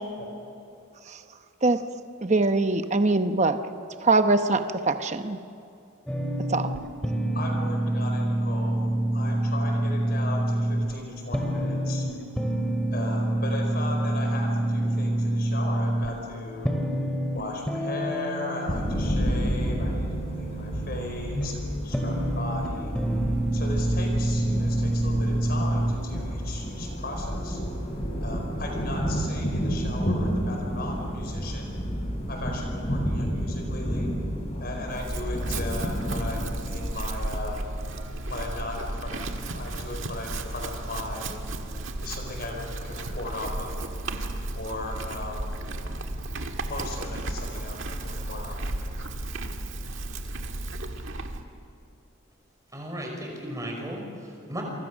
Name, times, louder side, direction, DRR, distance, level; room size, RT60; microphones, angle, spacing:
voice 1, 2.2-3.6 4.0-5.4 6.5-6.7, right 3 dB, 30° right, 8 dB, 0.9 m, -22 dB
sound 1, 6.1-25.9, right 1 dB, 5° left, 2.3 m, -27 dB
voice 2, 7.3-12.1 12.9-16.8 17.3-22.9 23.5-27.6 28.2-31.8 32.3-34.1 34.6-37.6 38.3-41.4 42.0-43.8 44.5-45.5 45.8-46.3 46.6-48.6, left 2 dB, 45° left, 2 dB, 4.8 m, -37 dB
sound 2, 18.7-37.0, equal, 30° left, 4.4 m, -30 dB
Chewing mastication / Livestock farm animals working animals, 34.9-51.4, right 2 dB, 65° right, 1.7 m, -34 dB
voice 3, 52.7-54.6, equal, 15° right, 0 dB, 5.3 m, -35 dB
29.5 x 24.5 x 6.4 m, 2.6 s
head